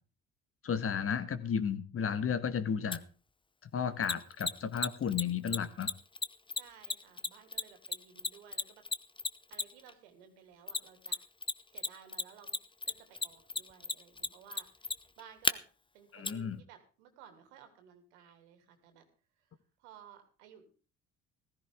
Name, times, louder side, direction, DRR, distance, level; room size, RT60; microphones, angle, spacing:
voice 1, 0.6-3.0 3.7-5.9 16.1-16.6, left 7 dB, 40° left, 12 dB, 1.5 m, -33 dB
Mechanisms, 2.9-3.0 4.0-9.9 10.7-11.5 11.8-15.5 16.2-16.3, left 4 dB, 15° left, 0.8 m, -33 dB
voice 2, 6.5-8.9 9.5-11.2 11.7-12.6 12.9-15.6 15.9-19.1 19.4-20.7, right 8 dB, 85° right, 6 dB, 2.8 m, -57 dB
15.0 x 14.0 x 3.7 m, 0.37 s
hypercardioid pair, 70°, 33 cm